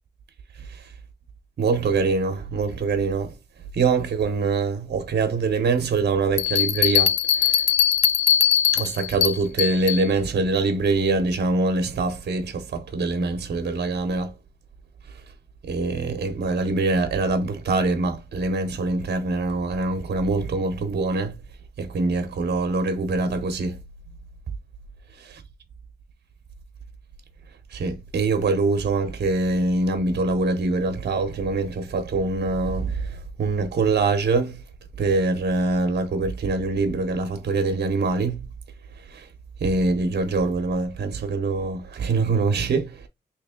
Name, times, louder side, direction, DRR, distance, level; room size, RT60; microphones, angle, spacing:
voice 1, 1.6-3.3 3.7-7.6 8.7-14.3 15.6-21.4 21.8-23.8 25.2-25.4 27.7-34.6 35.0-38.4 39.1-39.3 39.6-43.1, right 3 dB, 60° right, 0.7 m, -24 dB
Bell, 6.4-10.0, left 9 dB, 75° left, 0.4 m, -21 dB
3.2 x 2.9 x 3.6 m
wide cardioid pair, 145°, 18 cm